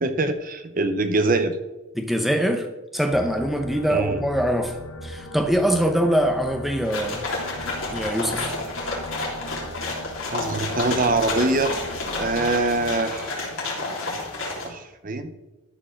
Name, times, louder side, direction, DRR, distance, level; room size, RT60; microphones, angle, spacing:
voice 1, 0.0-1.6 3.9-4.2 10.3-11.8 12.2-13.3 14.6-15.3, right 2 dB, 40° right, 9 dB, 0.8 m, -23 dB
voice 2, 2.0-2.6 2.9-4.8 5.0-7.2 7.9-8.5, equal, ahead, 5 dB, 0.9 m, -23 dB
sound 1, 3.1-12.9, left 1 dB, 80° left, 1.2 m, -38 dB
sound 2, 6.8-14.7, left 2 dB, 65° left, 3.3 m, -30 dB
13.0 x 5.0 x 6.4 m, 1.1 s
head